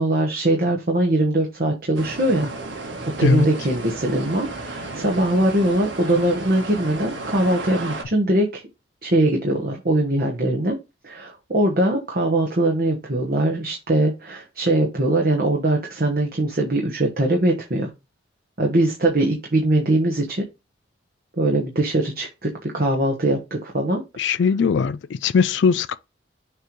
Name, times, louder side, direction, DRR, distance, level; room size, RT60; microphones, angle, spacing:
voice 1, 0.0-2.5 2.8-2.9 3.2-8.6 9.0-10.8 11.0-17.9 18.6-20.4 21.4-24.0, right 1 dB, 50° right, 1.2 m, -21 dB
sound 1, 1.9-8.0, right 2 dB, 80° right, 1.6 m, -33 dB
voice 2, 24.2-26.0, left 5 dB, 70° left, 0.4 m, -19 dB
6.6 x 3.1 x 5.1 m
head